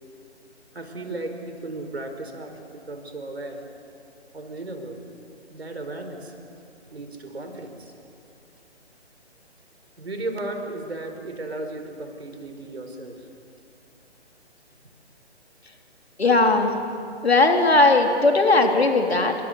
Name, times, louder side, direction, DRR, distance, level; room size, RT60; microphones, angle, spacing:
voice 1, 0.7-3.6 4.3-5.0 5.5-6.3 6.9-7.9 10.0-13.3, right 2 dB, 65° right, 6 dB, 4.6 m, -35 dB
voice 2, 16.2-16.7 17.2-19.4, left 2 dB, 65° left, 4 dB, 3.6 m, -18 dB
28.5 x 24.0 x 8.2 m, 2.7 s
figure-of-eight pair, 145°, 34 cm